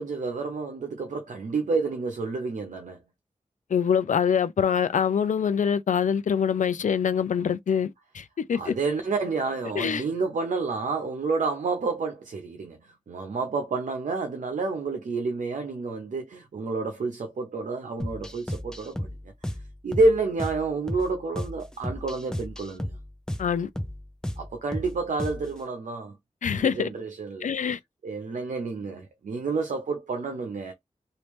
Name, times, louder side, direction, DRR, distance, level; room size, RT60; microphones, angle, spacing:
voice 1, 0.0-3.0 8.5-19.1 19.8-23.0 24.4-26.2 26.5-27.5 28.0-30.7, right 3 dB, 85° right, 0.8 m, -29 dB
voice 2, 3.7-8.7 9.8-10.0 23.4-23.7 26.4-26.9 27.4-27.8, left 7 dB, 90° left, 0.5 m, -25 dB
sound 1, 18.0-25.6, left 1 dB, 5° left, 0.6 m, -35 dB
3.1 x 2.7 x 3.3 m
wide cardioid pair, 90°, 13 cm